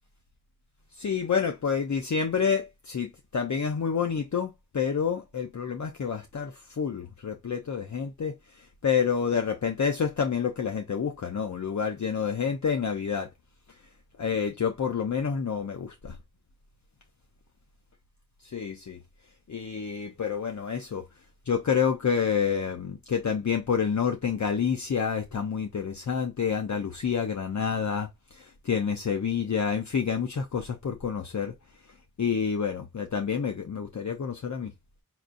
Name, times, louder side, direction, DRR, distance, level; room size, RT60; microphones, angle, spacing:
voice 1, 0.9-13.3 14.2-16.2 18.4-19.0 19.5-21.0 21.5-31.5 32.2-34.7, left 6 dB, 55° left, 0.6 m, -28 dB
5.8 x 2.5 x 2.5 m
wide cardioid pair, 65°, 34 cm